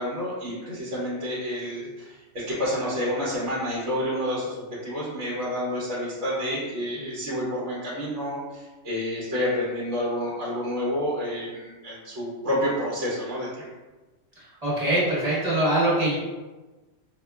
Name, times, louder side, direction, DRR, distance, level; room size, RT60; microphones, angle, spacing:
voice 1, 0.0-13.7, equal, 70° right, -9 dB, 1.2 m, -29 dB
voice 2, 14.6-16.2, right 1 dB, 35° right, -9 dB, 1.4 m, -23 dB
5.0 x 2.2 x 2.3 m, 1.2 s
omnidirectional pair, 1.2 m